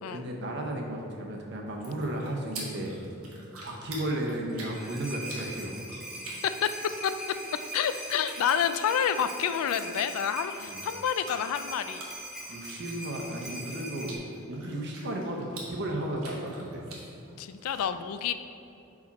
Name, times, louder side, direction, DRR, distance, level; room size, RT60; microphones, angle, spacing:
voice 1, 0.1-3.0 3.6-5.7 10.6-10.8 12.5-16.9, right 1 dB, 50° right, 0 dB, 0.8 m, -34 dB
sound 1, 1.7-17.8, right 2 dB, 80° right, 1.4 m, -48 dB
sound 2, 4.5-14.2, right 1 dB, ahead, 0.7 m, -41 dB
voice 2, 7.7-12.0 17.4-18.3, left 8 dB, 80° left, 11 dB, 0.3 m, -28 dB
5.7 x 4.8 x 4.2 m, 2.7 s
head